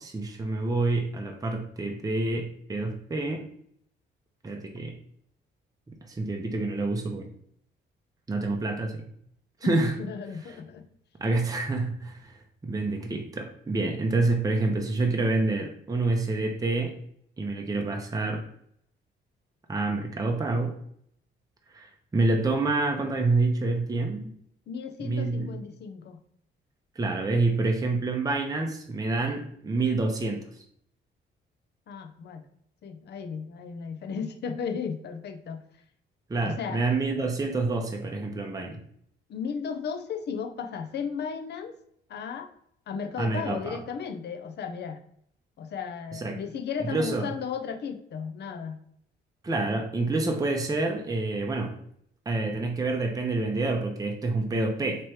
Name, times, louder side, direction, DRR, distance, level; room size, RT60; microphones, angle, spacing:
voice 1, 0.0-3.4 4.4-4.9 6.0-7.3 8.3-9.0 9.6-9.9 11.2-16.9 17.4-18.4 19.7-20.7 21.7-24.3 25.0-25.5 27.0-30.6 36.3-38.8 43.2-43.8 46.1-46.4 46.8-47.3 49.4-51.7 52.3-55.1, right 3 dB, 20° right, 2 dB, 0.7 m, -27 dB
voice 2, 9.6-10.8 24.7-26.2 31.9-32.4 32.8-35.6 36.4-36.8 39.3-41.8 42.1-42.5 42.9-45.0 45.6-48.8, left 6 dB, 60° left, 8 dB, 0.6 m, -35 dB
3.1 x 3.0 x 4.6 m, 0.66 s
cardioid pair, 90°, 20 cm